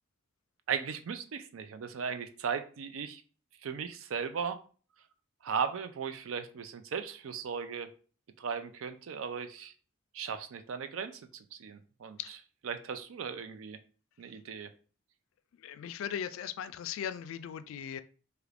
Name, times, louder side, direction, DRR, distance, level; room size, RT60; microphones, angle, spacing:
voice 1, 0.7-3.2 3.6-4.6 5.4-7.9 8.4-9.7 10.1-12.2 12.6-13.8 14.2-14.7, right 6 dB, 85° right, 0.4 m, -37 dB
voice 2, 15.6-18.0, left 9 dB, 80° left, 0.3 m, -38 dB
2.8 x 2.4 x 3.3 m
head